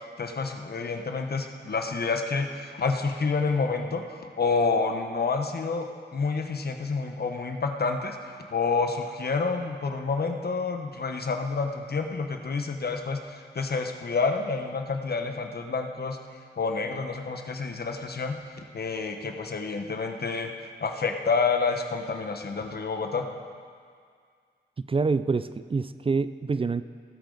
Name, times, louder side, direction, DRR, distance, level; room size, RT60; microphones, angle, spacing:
voice 1, 0.2-16.2 16.6-18.4 18.7-20.5 20.8-23.2, left 4 dB, 60° left, 5 dB, 1.0 m, -28 dB
voice 2, 24.8-26.8, right 4 dB, 30° right, 13 dB, 0.4 m, -26 dB
18.5 x 8.9 x 3.9 m, 2.1 s
wide cardioid pair, 70°, 18 cm